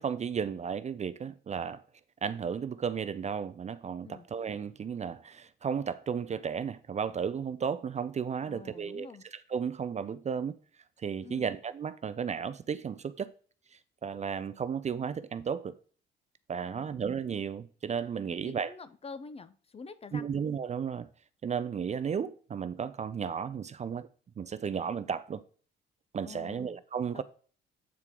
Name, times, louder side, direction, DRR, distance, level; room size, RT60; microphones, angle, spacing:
voice 1, 0.0-1.8 2.2-9.1 9.5-10.6 11.0-13.3 13.7-15.8 16.5-18.7 20.1-21.1 21.4-24.1 24.4-25.4 26.1-27.2, right 7 dB, 35° right, 0.4 m, -34 dB
voice 2, 8.5-9.2 11.2-11.5 16.7-17.0 18.4-20.3 26.2-26.8 27.1-27.2, left 4 dB, 30° left, 0.6 m, -47 dB
8.3 x 4.5 x 3.6 m
cardioid pair, 90°, 20 cm